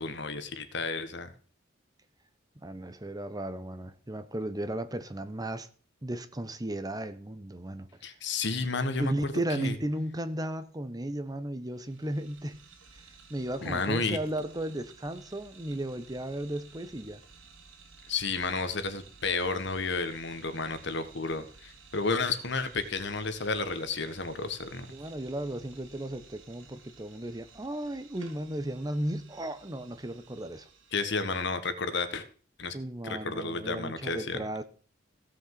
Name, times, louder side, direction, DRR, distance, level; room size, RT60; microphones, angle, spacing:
voice 1, 0.0-1.3 8.0-9.7 13.6-14.2 18.1-24.9 30.9-32.2 32.6-32.7 33.0-34.4, left 4 dB, 65° left, 1.6 m, -32 dB
voice 2, 2.6-5.7 6.0-7.9 9.0-12.6 13.3-17.2 24.9-30.7 32.7-34.6, right 1 dB, 20° right, 1.0 m, -35 dB
sound 1, 11.6-31.3, right 5 dB, 75° right, 2.4 m, -55 dB
16.0 x 6.5 x 7.6 m
head